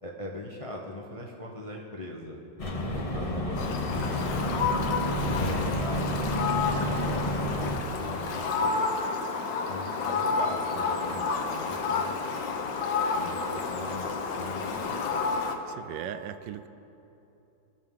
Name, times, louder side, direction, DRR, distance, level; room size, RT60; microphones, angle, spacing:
voice 1, 0.0-2.4 2.9-4.4 5.1-6.1 6.6-8.9 9.7-12.2 13.1-14.1 14.3-15.2, left 1 dB, 50° left, -2 dB, 0.4 m, -40 dB
sound 1, 2.6-7.8, equal, 25° left, 0.8 m, -30 dB
Fowl, 3.6-15.5, left 4 dB, 75° left, 1.5 m, -30 dB
voice 2, 15.7-16.7, right 10 dB, 85° right, 11 dB, 1.2 m, -38 dB
19.5 x 6.7 x 3.7 m, 2.9 s
omnidirectional pair, 2.0 m